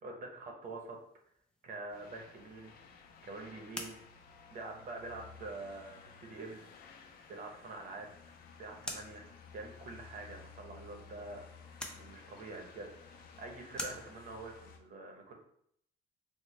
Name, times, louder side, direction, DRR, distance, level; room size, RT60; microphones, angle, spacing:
voice 1, 0.0-1.0 1.6-2.7 3.2-4.0 4.5-6.6 7.3-8.1 8.6-9.3 9.5-11.4 11.9-15.3, right 2 dB, 50° right, 2 dB, 0.8 m, -46 dB
sound 1, 0.6-14.3, left 1 dB, 5° left, 0.5 m, -51 dB
sound 2, 1.9-14.8, left 5 dB, 65° left, 0.5 m, -55 dB
3.9 x 2.1 x 3.1 m, 0.69 s
cardioid pair, 110°, 17 cm